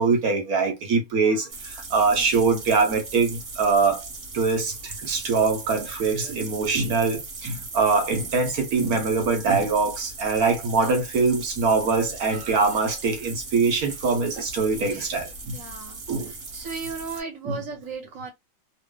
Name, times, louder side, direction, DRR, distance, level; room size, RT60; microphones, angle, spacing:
voice 1, 0.0-4.0 4.3-15.6 16.1-16.3 17.4-17.6, right 4 dB, 85° right, 1.4 m, -23 dB
sound 1, 1.5-17.2, right 3 dB, 45° right, 1.2 m, -38 dB
voice 2, 2.0-2.3 10.8-10.9 15.5-16.0 16.5-18.3, right 5 dB, 65° right, 1.5 m, -36 dB
3.2 x 2.1 x 3.7 m
omnidirectional pair, 1.5 m